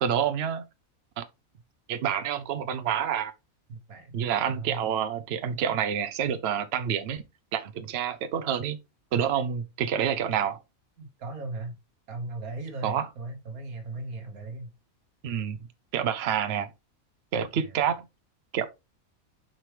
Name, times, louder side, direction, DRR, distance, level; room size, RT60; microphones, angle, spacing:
voice 1, 0.0-0.7 1.2-1.3 1.9-3.3 4.1-7.2 7.5-8.8 9.1-10.6 12.8-13.1 15.2-15.6 15.9-16.7 17.3-18.1 18.5-18.6, right 8 dB, 55° right, 0.8 m, -28 dB
voice 2, 3.7-4.1 4.5-4.8 11.0-11.8 12.1-14.7 17.3-17.8, right 2 dB, 85° right, 1.7 m, -38 dB
7.5 x 4.7 x 3.3 m
omnidirectional pair, 1.5 m